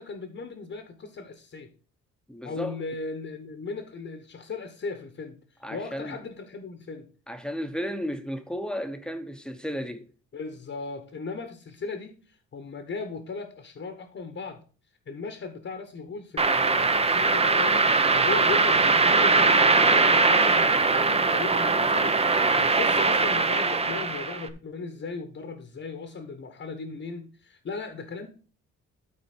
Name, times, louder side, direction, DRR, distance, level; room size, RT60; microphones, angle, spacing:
voice 1, 0.0-1.7 2.4-5.4 5.7-7.0 10.3-14.6 15.1-28.3, left 4 dB, 45° left, 1.3 m, -37 dB
voice 2, 2.3-2.8 5.6-6.2 7.3-10.1, equal, 5° left, 1.1 m, -33 dB
sound 1, 16.4-24.5, right 3 dB, 20° right, 0.8 m, -21 dB
12.5 x 4.2 x 4.3 m
cardioid pair, 90°, 30 cm